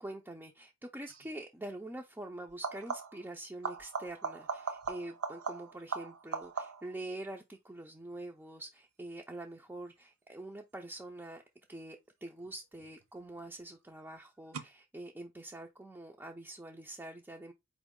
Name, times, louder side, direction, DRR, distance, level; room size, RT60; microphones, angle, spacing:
voice 1, 0.0-11.4 11.7-17.5, right 1 dB, 10° right, 0.4 m, -45 dB
sound 1, 1.1-1.3 2.5-3.3 3.6-7.0 12.4-13.0 14.5-14.6, right 5 dB, 80° right, 0.7 m, -39 dB
4.3 x 3.0 x 3.5 m
head